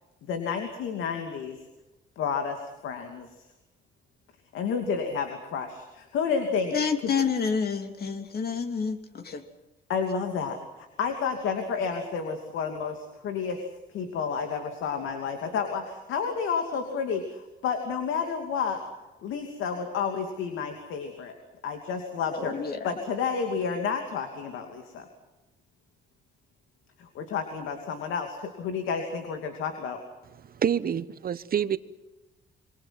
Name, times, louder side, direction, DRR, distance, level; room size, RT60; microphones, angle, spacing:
voice 1, 0.3-1.6 2.2-3.3 4.5-6.7 9.9-13.6 13.9-18.8 19.2-21.3 21.6-22.6 22.8-25.1 27.0-30.0, left 6 dB, 85° left, 2.7 m, -30 dB
voice 2, 6.7-9.4 22.3-22.9, left 5 dB, 50° left, 3.1 m, -29 dB
voice 3, 30.4-31.8, right 8 dB, 50° right, 1.1 m, -27 dB
27.0 x 24.0 x 6.0 m
cardioid pair, 90°, 20 cm